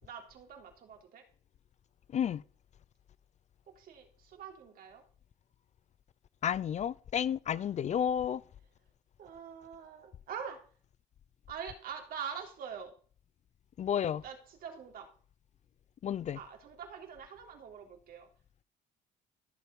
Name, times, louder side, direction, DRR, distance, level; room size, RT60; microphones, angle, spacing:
voice 1, 0.0-1.2 3.8-5.0 7.5-7.7 9.2-10.6 11.5-12.9 14.2-15.1 16.3-18.3, right 7 dB, 60° right, 3.5 m, -44 dB
voice 2, 6.4-8.4 13.8-14.2 16.0-16.4, left 9 dB, 45° left, 0.6 m, -31 dB
15.0 x 7.6 x 5.3 m
cardioid pair, 110°, 17 cm